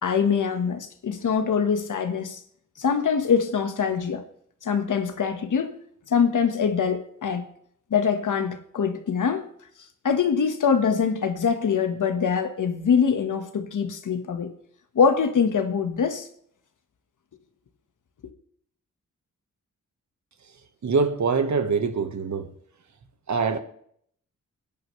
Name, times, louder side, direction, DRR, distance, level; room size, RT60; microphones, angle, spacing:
voice 1, 0.0-2.4 2.8-4.2 4.6-5.8 6.1-7.4 7.9-9.5 10.0-14.5 14.9-16.3, left 6 dB, 70° left, 1.5 m, -23 dB
voice 2, 20.8-22.5 23.3-23.6, right 5 dB, 60° right, 1.5 m, -24 dB
22.5 x 10.5 x 3.3 m
wide cardioid pair, 85°, 31 cm